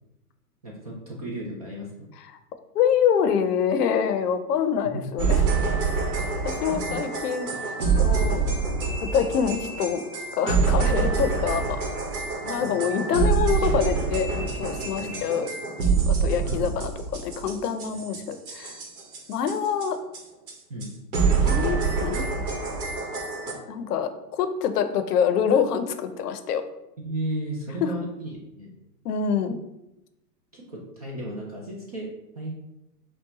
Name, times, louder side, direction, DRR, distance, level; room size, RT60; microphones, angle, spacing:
voice 1, 0.6-2.1 4.9-5.1 6.7-7.0 10.8-10.9 12.4-12.8 15.0-15.2 16.4-16.8 20.7-20.9 27.0-28.7 30.5-32.5, right 1 dB, 25° right, -3 dB, 0.3 m, -34 dB
voice 2, 2.7-5.4 6.4-8.4 9.1-10.0 10.4-11.8 12.5-15.5 16.1-18.8 19.3-20.0 21.4-22.3 23.7-26.6 27.8-27.9 29.0-29.6, left 7 dB, 70° left, 9 dB, 0.7 m, -25 dB
sound 1, 5.2-19.9 20.1-20.2 20.5-20.6 20.8-20.9 21.1-23.5, right 5 dB, 60° right, 1.3 m, -26 dB
5.4 x 2.3 x 3.9 m, 0.90 s
hypercardioid pair, 145°, 49 cm